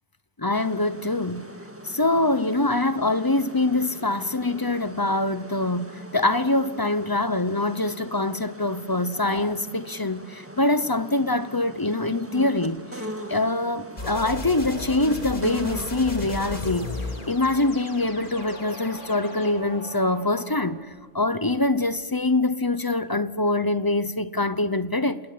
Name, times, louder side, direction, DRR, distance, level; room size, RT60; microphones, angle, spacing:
voice 1, 0.4-1.4 1.8-12.8 13.3-16.9 17.3-20.8 21.1-25.2, left 2 dB, 20° left, 0.8 m, -24 dB
sound 1, 0.5-20.0, equal, 10° right, 1.9 m, -41 dB
sound 2, 14.0-19.5, left 2 dB, 45° left, 3.3 m, -35 dB
sound 3, 18.3-21.0 21.5-22.0, equal, 65° left, 7.8 m, -42 dB
27.5 x 20.0 x 8.5 m
omnidirectional pair, 1.2 m